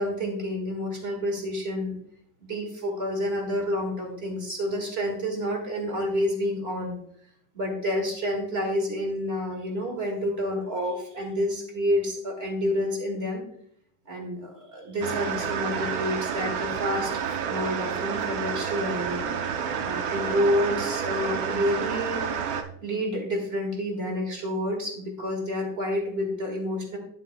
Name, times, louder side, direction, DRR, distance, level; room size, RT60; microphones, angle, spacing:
voice 1, 0.0-2.0 2.4-7.0 7.5-13.4 14.1-17.1 17.4-19.2 19.9-22.3 22.8-27.0, equal, 30° right, 2 dB, 1.9 m, -29 dB
sound 1, 15.0-22.6, right 7 dB, 85° right, 1.6 m, -29 dB
9.8 x 8.5 x 2.2 m, 0.66 s
omnidirectional pair, 2.2 m